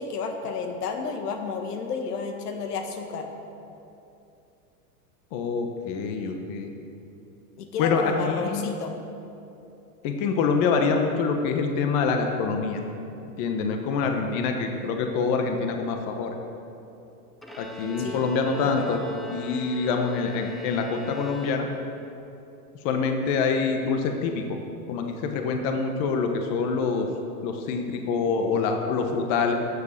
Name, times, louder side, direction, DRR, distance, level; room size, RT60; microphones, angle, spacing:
voice 1, 0.0-3.3 7.6-9.0 18.0-18.2 18.6-19.0, left 5 dB, 85° left, 4 dB, 1.7 m, -31 dB
voice 2, 5.3-6.7 7.8-8.8 10.0-12.8 13.4-16.4 17.6-19.0 19.3-21.7 22.8-24.6 24.9-27.1 27.4-29.5, left 5 dB, 45° left, 4 dB, 1.2 m, -25 dB
Bowed string instrument, 17.4-22.1, left 1 dB, ahead, 0.4 m, -41 dB
13.0 x 7.5 x 6.6 m, 2.8 s
supercardioid pair, 140°, 45 cm